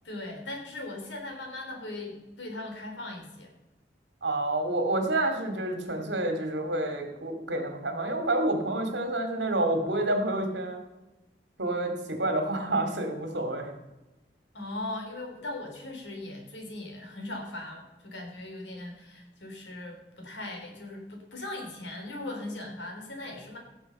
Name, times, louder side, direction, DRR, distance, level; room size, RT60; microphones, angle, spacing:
voice 1, 0.0-3.5 14.5-23.6, left 2 dB, 85° left, 1 dB, 3.8 m, -39 dB
voice 2, 4.2-10.8 11.6-13.7, right 2 dB, 75° right, 5 dB, 2.5 m, -28 dB
16.5 x 7.0 x 5.5 m, 1.0 s
head